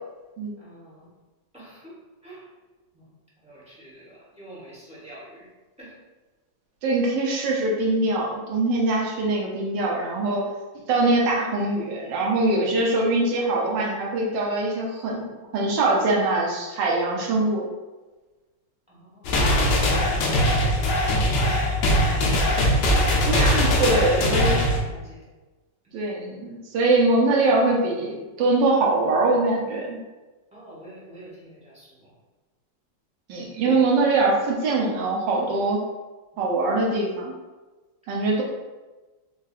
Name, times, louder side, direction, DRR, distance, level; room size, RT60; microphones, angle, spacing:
voice 1, 0.6-1.1 1.5-2.4 2.9-3.1 3.4-5.5 5.8-6.0 18.9-19.8 20.5-22.9 24.1-25.2 30.5-32.1 36.3-36.4, right 1 dB, 5° right, -8 dB, 0.5 m, -46 dB
voice 2, 6.8-10.4 10.9-17.7 23.3-24.6 25.9-30.0 33.3-35.8 36.4-37.3 38.1-38.4, right 2 dB, 75° right, -3 dB, 1.4 m, -23 dB
sound 1, 19.2-24.8, equal, 70° left, 1.2 m, -21 dB
4.7 x 2.6 x 2.4 m, 1.2 s
omnidirectional pair, 2.1 m